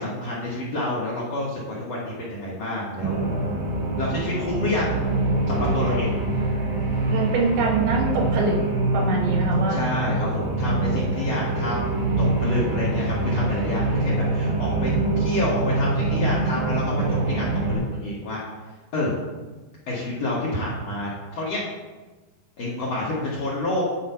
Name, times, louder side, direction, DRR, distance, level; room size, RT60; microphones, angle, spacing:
voice 1, 0.0-3.3 4.0-4.9 5.5-6.1 9.7-14.9 15.2-18.4 18.9-19.2 19.9-21.1 21.4-21.6 22.6-23.8, left 1 dB, 55° left, -6 dB, 1.9 m, -28 dB
sound 1, 3.0-17.8, right 2 dB, 60° right, 4.4 m, -24 dB
voice 2, 7.1-8.6 8.9-9.8, right 3 dB, 75° right, 0 dB, 3.2 m, -24 dB
9.5 x 4.8 x 5.6 m, 1.2 s
omnidirectional pair, 4.7 m